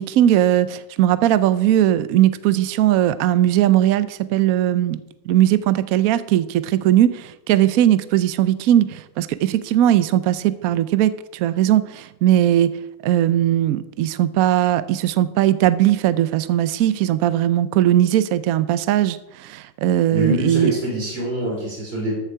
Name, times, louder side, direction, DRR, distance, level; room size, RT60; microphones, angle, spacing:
voice 1, 0.0-5.0 5.3-12.8 13.0-20.7, right 12 dB, 80° right, 14 dB, 0.7 m, -19 dB
voice 2, 20.1-22.2, equal, 30° right, -2 dB, 3.6 m, -24 dB
14.0 x 7.2 x 4.7 m, 0.88 s
omnidirectional pair, 2.1 m